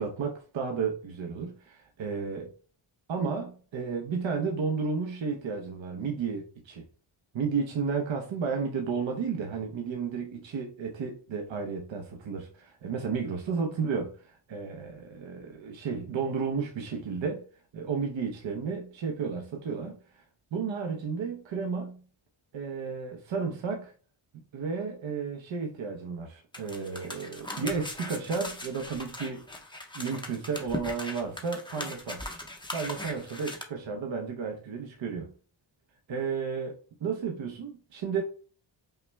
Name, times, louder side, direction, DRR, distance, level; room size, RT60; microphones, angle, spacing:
voice 1, 0.0-2.5 3.1-6.9 7.3-17.4 17.7-20.2 20.5-22.0 22.5-23.9 24.5-29.4 29.9-32.3 32.7-35.3 36.1-38.2, right 5 dB, 65° right, 0.8 m, -33 dB
sound 1, 26.5-33.6, left 1 dB, 10° left, 0.6 m, -39 dB
5.6 x 2.1 x 3.4 m
wide cardioid pair, 125°, 49 cm